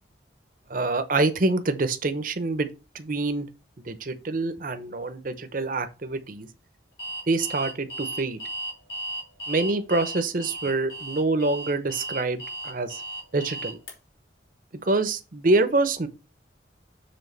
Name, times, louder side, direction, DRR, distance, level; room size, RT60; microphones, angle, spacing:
voice 1, 0.7-2.7 2.9-3.5 3.8-6.5 7.3-8.4 9.5-13.0 13.3-13.8 14.8-16.1, right 2 dB, 45° right, 0.8 m, -26 dB
Alarm, 7.0-13.9, right 1 dB, 65° left, 2.5 m, -35 dB
7.2 x 3.6 x 5.4 m
head